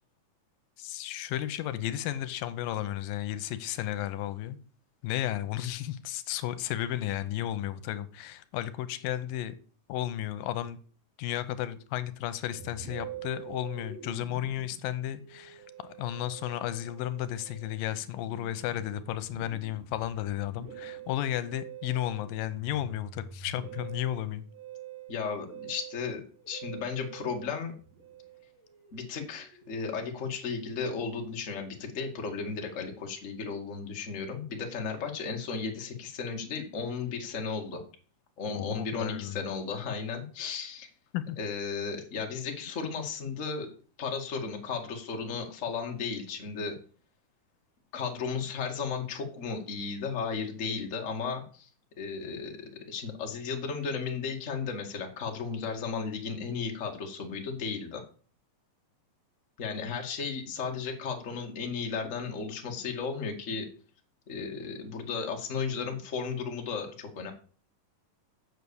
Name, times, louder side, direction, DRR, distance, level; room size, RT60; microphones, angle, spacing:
voice 1, 0.8-4.6 5.0-9.5 9.9-10.8 11.2-24.4 38.5-39.4 41.1-41.4, left 12 dB, 85° left, 2.5 m, -33 dB
Musical instrument, 12.5-30.1, right 8 dB, 85° right, 4.9 m, -47 dB
voice 2, 25.1-27.7 28.9-37.8 38.4-40.9 41.4-43.7 44.0-46.8 47.9-51.7 52.0-58.0 59.6-63.7 64.3-67.3, left 5 dB, 30° left, 1.5 m, -34 dB
8.3 x 6.4 x 7.0 m
omnidirectional pair, 3.9 m